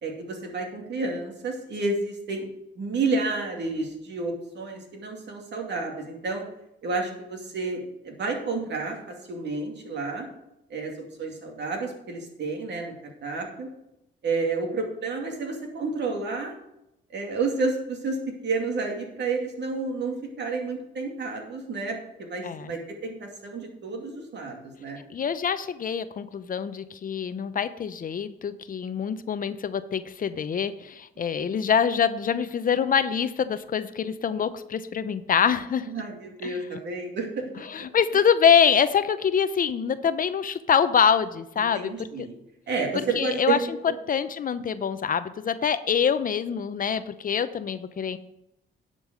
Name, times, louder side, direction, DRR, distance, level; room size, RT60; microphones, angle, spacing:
voice 1, 0.0-2.5 2.8-6.4 6.8-10.3 10.7-10.9 11.2-13.7 14.2-16.6 17.1-18.2 18.4-25.0 31.2-31.6 35.9-37.4 41.6-42.3 42.7-43.6 43.8-44.0, right 3 dB, 60° right, 2 dB, 2.5 m, -30 dB
voice 2, 25.1-35.9 36.4-36.5 37.7-41.9 42.2-42.3 43.2-43.6 44.1-48.2, left 7 dB, 45° left, 12 dB, 0.6 m, -25 dB
10.5 x 5.4 x 6.3 m, 0.84 s
cardioid pair, 90°, 20 cm